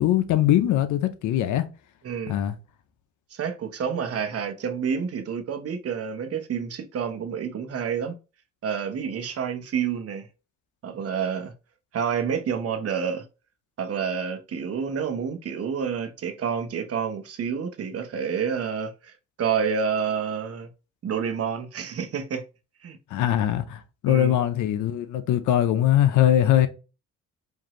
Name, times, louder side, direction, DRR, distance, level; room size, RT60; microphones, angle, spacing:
voice 1, 0.0-1.7 2.3-2.6 23.1-26.7, left 12 dB, 80° left, 0.7 m, -21 dB
voice 2, 2.0-2.4 3.3-8.2 8.6-10.3 10.8-11.5 11.9-13.3 13.8-20.7 21.0-22.4 22.8-23.0 24.1-24.4, right 7 dB, 50° right, 0.9 m, -29 dB
4.8 x 2.7 x 3.0 m
cardioid pair, 90°, 30 cm